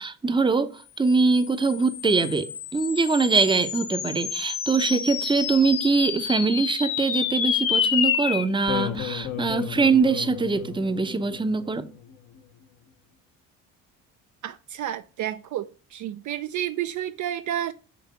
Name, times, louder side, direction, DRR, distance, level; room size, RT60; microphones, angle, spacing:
voice 1, 0.0-11.9, right 4 dB, 15° right, 0.7 m, -23 dB
sound 1, 1.2-11.9, left 8 dB, 60° left, 1.1 m, -30 dB
voice 2, 14.4-17.7, right 11 dB, 50° right, 0.4 m, -31 dB
6.0 x 3.3 x 5.7 m
hypercardioid pair, 55°, 38 cm